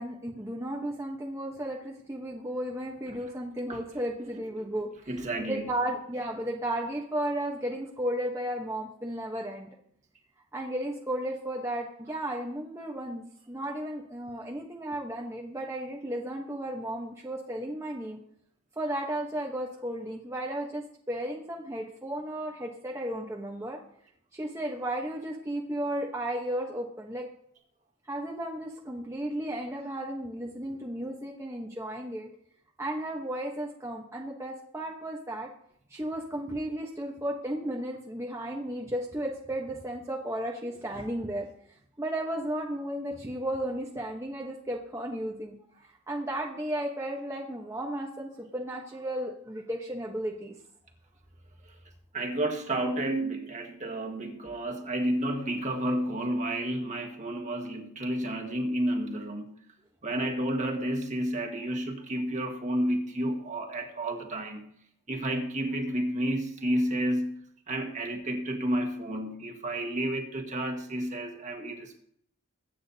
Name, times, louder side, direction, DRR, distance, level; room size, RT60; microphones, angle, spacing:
voice 1, 0.0-5.2 5.5-9.7 10.5-18.2 18.8-23.8 24.3-27.3 28.1-32.3 32.8-35.5 35.9-41.5 42.0-45.5 46.1-50.5, right 1 dB, 15° right, -1 dB, 1.0 m, -34 dB
voice 2, 5.1-5.7 51.6-51.8 52.1-59.5 60.0-64.7 65.1-67.4 67.7-72.0, right 1 dB, 35° right, 4 dB, 1.5 m, -31 dB
22.5 x 8.6 x 2.8 m, 0.70 s
head